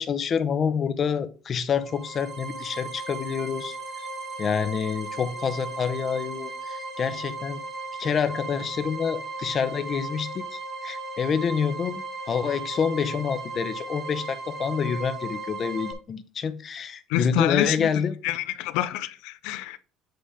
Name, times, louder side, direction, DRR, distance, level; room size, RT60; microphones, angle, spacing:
voice 1, 0.0-4.1 4.4-7.6 8.0-18.1, left 6 dB, 35° left, 0.6 m, -27 dB
sound 1, 1.7-15.9, right 3 dB, 10° right, 1.2 m, -36 dB
voice 2, 17.1-19.8, left 13 dB, 85° left, 0.4 m, -28 dB
7.8 x 3.3 x 4.9 m
cardioid pair, 145°, 0 cm